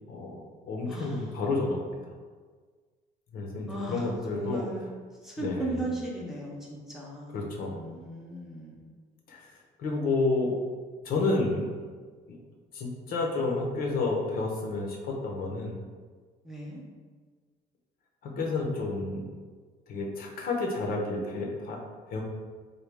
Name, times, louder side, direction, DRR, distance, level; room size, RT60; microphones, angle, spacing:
voice 1, 0.1-2.2 3.3-4.6 5.4-5.7 7.3-7.8 9.3-10.6 11.0-11.7 12.3-12.4 12.7-15.8 18.2-19.3 19.9-21.8 22.1-22.2, left 3 dB, 60° left, 0 dB, 0.6 m, -30 dB
voice 2, 0.9-1.3 3.7-4.9 5.2-7.4 7.7-8.9 16.4-16.8, right 2 dB, ahead, -5 dB, 0.6 m, -37 dB
3.3 x 2.2 x 3.3 m, 1.5 s
cardioid pair, 110°, 17 cm